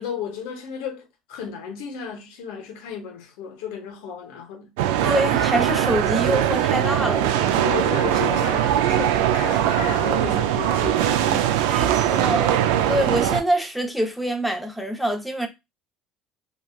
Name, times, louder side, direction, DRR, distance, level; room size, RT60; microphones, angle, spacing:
voice 1, 0.0-4.7 7.6-11.8, left 7 dB, 85° left, 0.8 m, -33 dB
sound 1, 4.8-13.4, right 11 dB, 90° right, 0.3 m, -21 dB
voice 2, 5.0-7.6 11.7-12.6 12.9-15.5, equal, ahead, 0.8 m, -25 dB
3.2 x 2.3 x 2.3 m
supercardioid pair, 95°, 0 cm